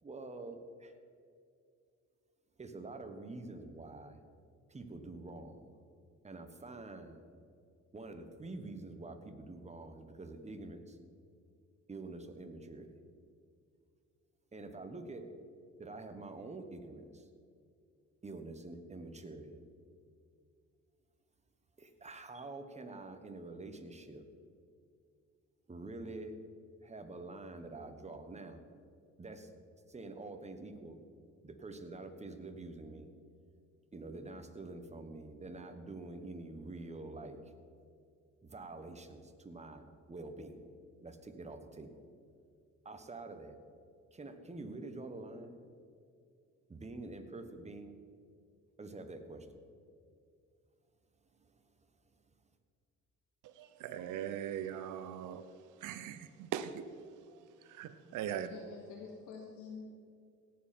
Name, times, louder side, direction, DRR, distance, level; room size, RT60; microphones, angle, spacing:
voice 1, 0.0-0.9 2.6-4.2 4.7-5.7 6.2-7.2 7.9-11.0 11.9-13.0 14.5-15.3 15.8-17.3 18.2-19.6 21.8-24.2 25.7-26.4 26.8-28.6 29.2-29.5 29.9-31.0 31.4-33.1 33.9-37.5 38.4-40.7 41.0-42.0 42.8-43.6 44.1-45.6 46.7-48.0 48.8-49.6 51.3-51.7 52.1-52.4, right 2 dB, 20° right, 7 dB, 1.3 m, -47 dB
voice 2, 53.4-55.4 55.8-56.8 57.6-58.5, right 10 dB, 85° right, 11 dB, 0.7 m, -40 dB
voice 3, 58.3-59.9, left 5 dB, 85° left, 1 dB, 1.2 m, -48 dB
17.5 x 7.6 x 4.4 m, 2.3 s
cardioid pair, 90°, 30 cm